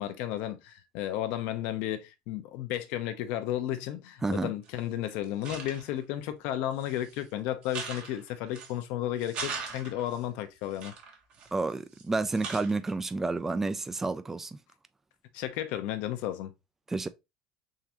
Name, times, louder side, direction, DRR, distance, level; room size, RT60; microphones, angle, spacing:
voice 1, 0.0-10.9 15.3-16.5, left 12 dB, 70° left, 0.7 m, -33 dB
voice 2, 4.2-4.5 11.5-14.6 16.9-17.1, right 3 dB, 15° right, 0.4 m, -30 dB
sound 1, 4.7-4.8 5.2-6.0 6.7-7.2 7.6-8.8 9.2-10.2 10.7-12.0 12.3-12.9, right 5 dB, 55° right, 1.4 m, -40 dB
3.7 x 3.3 x 2.9 m
supercardioid pair, 110°, 2 cm